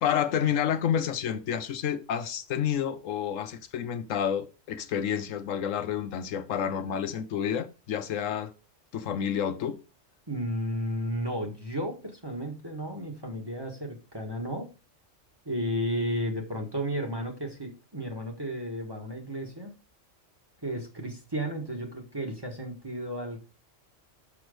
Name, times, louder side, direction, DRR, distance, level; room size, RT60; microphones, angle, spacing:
voice 1, 0.0-8.5 8.9-9.8, left 9 dB, 85° left, 1.1 m, -29 dB
voice 2, 10.3-14.7 15.4-19.7 20.6-23.4, equal, 20° right, 1.4 m, -33 dB
6.2 x 6.1 x 5.0 m
omnidirectional pair, 1.3 m